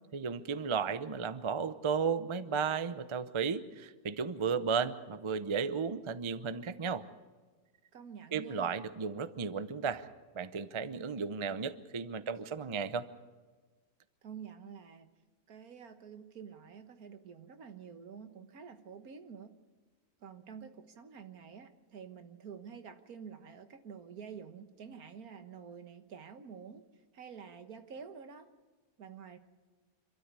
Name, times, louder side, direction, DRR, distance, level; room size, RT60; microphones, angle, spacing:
voice 1, 0.1-7.0 8.3-10.1 10.3-13.1, right 6 dB, 30° right, 13 dB, 0.5 m, -34 dB
voice 2, 7.9-8.8 14.2-15.1 15.5-19.6 20.2-26.8 27.1-28.5 29.0-29.4, right 7 dB, 75° right, 9 dB, 1.8 m, -49 dB
27.0 x 13.0 x 8.2 m, 1.4 s
omnidirectional pair, 1.6 m